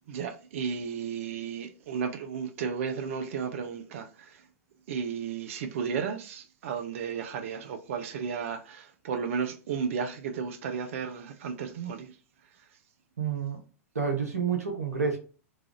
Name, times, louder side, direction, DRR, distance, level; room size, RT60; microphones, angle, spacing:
voice 1, 0.1-4.4 4.9-12.1, right 6 dB, 60° right, 0.4 m, -34 dB
voice 2, 13.2-13.6 13.9-15.2, right 6 dB, 85° right, 0.9 m, -29 dB
3.2 x 2.3 x 2.5 m
hypercardioid pair, 100°, 8 cm